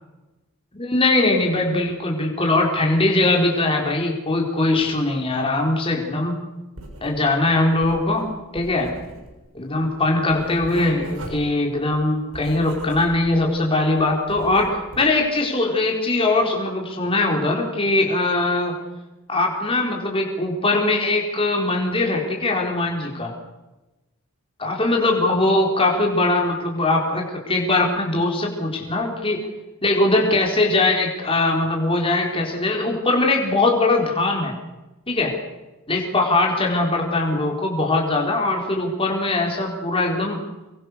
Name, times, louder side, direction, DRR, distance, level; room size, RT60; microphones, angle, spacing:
voice 1, 0.8-6.4 7.0-8.3 8.5-8.9 9.5-18.7 19.3-23.3 24.6-29.4 29.8-34.5 35.1-35.3 35.9-40.4, left 2 dB, 25° left, 0 dB, 4.3 m, -21 dB
Writing, 6.8-7.4 7.7-13.5 13.8-15.2, right 1 dB, 70° right, 6.9 m, -39 dB
26.0 x 22.5 x 6.7 m, 1.0 s
head